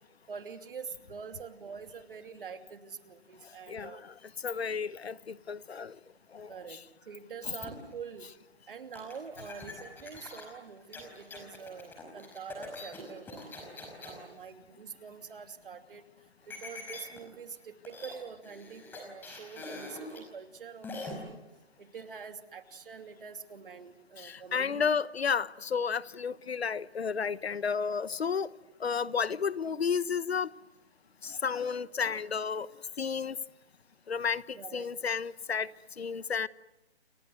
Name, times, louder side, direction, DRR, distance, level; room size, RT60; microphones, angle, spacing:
voice 1, 0.3-4.0 6.5-8.3 8.7-16.1 16.5-21.4 21.8-24.8 34.5-34.9, right 6 dB, 55° right, 2.9 m, -45 dB
voice 2, 3.7-4.1 4.4-5.9 6.3-6.5 24.2-28.5 28.8-30.5 31.2-32.7 33.0-33.4 34.1-35.7 36.0-36.5, left 6 dB, 70° left, 1.2 m, -32 dB
sound 1, 7.6-7.9 8.9-14.2 16.5-17.2 17.5-17.6 17.8-18.2 18.4-20.2 20.8-21.1, left 2 dB, 5° left, 5.0 m, -44 dB
29.5 x 25.0 x 7.9 m
hypercardioid pair, 160°, 33 cm